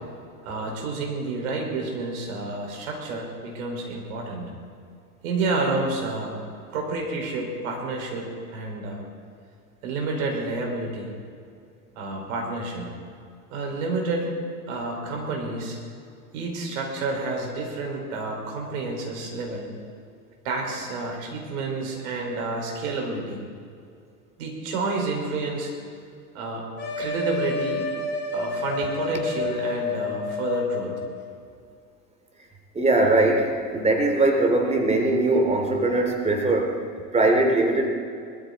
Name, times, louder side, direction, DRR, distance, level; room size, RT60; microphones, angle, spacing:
voice 1, 0.4-4.5 5.2-6.4 6.7-8.3 8.5-9.0 9.8-11.1 11.9-12.9 13.5-14.3 14.7-15.8 16.3-19.7 20.4-23.4 24.4-25.7 26.3-26.6 27.0-27.9 28.3-30.9, right 3 dB, 65° right, 0 dB, 4.9 m, -29 dB
sound 1, 26.8-31.2, left 3 dB, 25° left, 3.1 m, -30 dB
voice 2, 32.7-36.8 37.1-37.9, right 2 dB, 15° right, 3 dB, 3.0 m, -21 dB
20.0 x 13.5 x 4.1 m, 2.3 s
hypercardioid pair, 95°, 45 cm